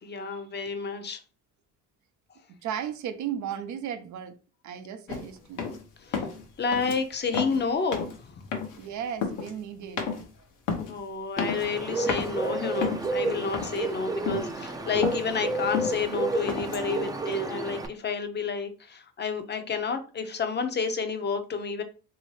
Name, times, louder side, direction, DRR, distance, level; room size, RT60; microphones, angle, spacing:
voice 1, 0.0-1.2 6.1-6.3 6.6-8.3 10.9-21.8, left 5 dB, 35° left, 0.6 m, -30 dB
voice 2, 2.5-4.4 4.6-5.8 8.8-10.2, right 9 dB, 70° right, 0.6 m, -35 dB
sound 1, 5.1-5.3 5.6-5.8 6.1-6.5 6.7-7.0 7.3-7.6 7.9-8.2 8.5-8.9 9.2-9.5 10.0-10.3 10.7-10.9 11.4-11.8 12.1-12.3 12.8-13.2 13.5-13.9 14.3-14.5 14.8-15.3 15.7-16.0 16.5-16.9, left 6 dB, 80° left, 0.9 m, -31 dB
Bird, 11.4-17.9, right 2 dB, 10° right, 0.4 m, -31 dB
3.1 x 2.7 x 3.1 m
cardioid pair, 90°, 30 cm